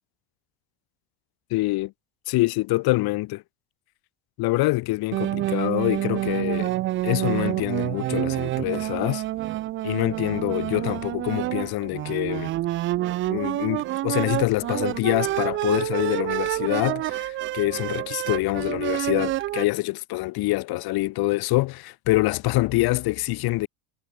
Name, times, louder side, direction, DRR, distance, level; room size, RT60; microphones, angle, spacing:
voice 1, 1.5-1.9 2.3-3.4 4.4-6.7 7.0-9.2 9.8-12.5 13.3-23.7, left 20 dB, 55° left, 2.9 m, -25 dB
sound 1, 5.1-19.6, right 15 dB, 30° right, 0.4 m, -28 dB
cardioid pair, 145°, 45 cm